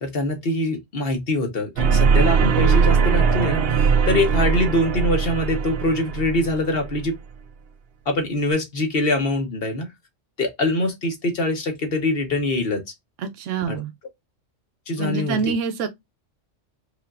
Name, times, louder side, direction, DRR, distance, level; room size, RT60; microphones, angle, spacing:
voice 1, 0.0-7.1 8.1-9.9 10.4-12.8 13.7-13.8 14.9-15.4, left 1 dB, 50° left, 1.3 m, -23 dB
sound 1, 1.8-7.1, right 6 dB, 60° right, 0.8 m, -20 dB
voice 2, 13.2-13.9 15.0-15.9, right 5 dB, 85° right, 1.0 m, -26 dB
5.0 x 2.6 x 2.4 m
omnidirectional pair, 1.3 m